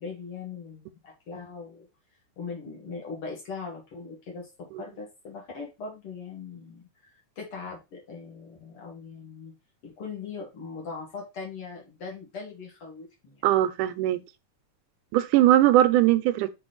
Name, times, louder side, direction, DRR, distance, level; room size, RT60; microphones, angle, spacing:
voice 1, 0.0-1.9 2.4-6.9 7.4-9.5 9.8-13.4, left 4 dB, 50° left, 2.4 m, -40 dB
voice 2, 13.4-14.2 15.1-16.5, right 13 dB, 85° right, 2.1 m, -20 dB
6.6 x 4.4 x 4.0 m
omnidirectional pair, 3.6 m